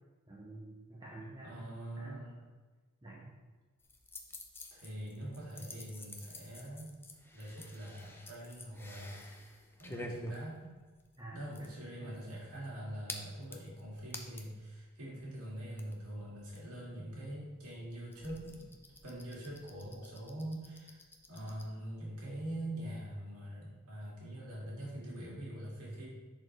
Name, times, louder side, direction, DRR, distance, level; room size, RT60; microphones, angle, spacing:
voice 1, 0.3-1.7 2.0-2.3 3.0-3.3 11.2-12.2, right 1 dB, 20° right, -4 dB, 0.9 m, -49 dB
voice 2, 1.4-2.4 4.7-6.9 7.3-10.7 11.3-18.7 19.0-21.0 21.3-26.1, right 1 dB, 80° right, -5 dB, 2.4 m, -44 dB
sound 1, 3.8-14.6 15.0-15.1 15.3-21.6, left 1 dB, 10° left, 0.6 m, -50 dB
10.5 x 4.3 x 3.3 m, 1.3 s
head